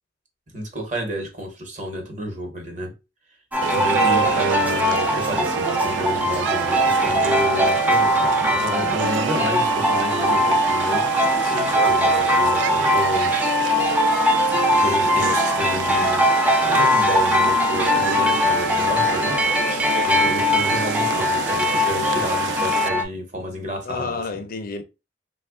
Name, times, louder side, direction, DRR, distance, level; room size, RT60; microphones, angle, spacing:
voice 1, 0.5-2.9 3.7-11.1 11.8-13.9 14.7-19.4 20.0-24.4, equal, 45° right, 1.0 m, -30 dB
sound 1, 3.5-23.0, left 1 dB, 10° right, 0.5 m, -20 dB
sound 2, 3.6-22.9, right 7 dB, 80° right, 0.3 m, -28 dB
voice 2, 11.4-11.8 20.4-20.5 23.9-24.8, left 4 dB, 55° left, 0.5 m, -31 dB
3.0 x 2.3 x 3.6 m
head